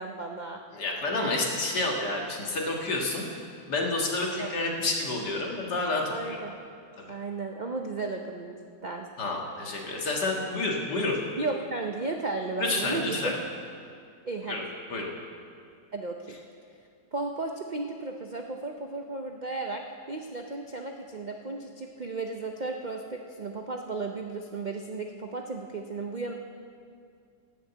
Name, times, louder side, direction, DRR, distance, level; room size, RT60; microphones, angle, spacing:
voice 1, 0.0-0.6 4.4-4.5 6.1-6.5 7.1-9.1 11.4-13.3 14.2-14.6 15.9-16.4 17.1-26.3, right 3 dB, 65° right, 3 dB, 0.4 m, -34 dB
voice 2, 0.7-3.2 3.7-6.4 7.0-7.2 9.2-11.2 12.6-13.4 14.5-14.6 14.9-15.1, left 2 dB, 70° left, -1 dB, 2.4 m, -29 dB
18.0 x 6.5 x 8.0 m, 2.3 s
omnidirectional pair, 1.9 m